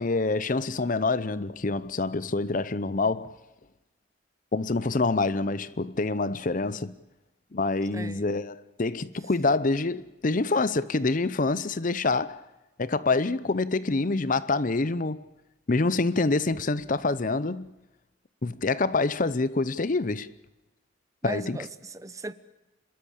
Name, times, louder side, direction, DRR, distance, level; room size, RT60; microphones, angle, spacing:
voice 1, 0.0-3.3 4.5-6.9 7.5-12.4 12.8-15.2 15.7-17.7 18.4-20.3 21.2-21.6, left 3 dB, 40° left, 0.7 m, -26 dB
voice 2, 7.9-8.2 21.2-22.3, right 2 dB, 15° right, 0.7 m, -37 dB
27.5 x 13.5 x 8.7 m
head